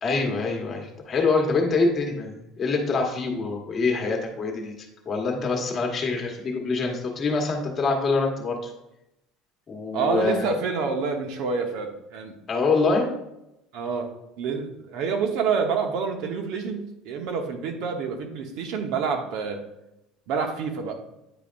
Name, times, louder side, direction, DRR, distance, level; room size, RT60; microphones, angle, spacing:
voice 1, 0.0-4.7 5.0-8.7 9.7-10.4 12.5-13.2, left 3 dB, 25° left, 1 dB, 1.3 m, -25 dB
voice 2, 9.9-12.3 13.7-14.1 14.4-19.6 20.3-21.0, right 5 dB, 65° right, 4 dB, 1.1 m, -27 dB
9.0 x 5.0 x 2.5 m, 0.88 s
cardioid pair, 160°, 0 cm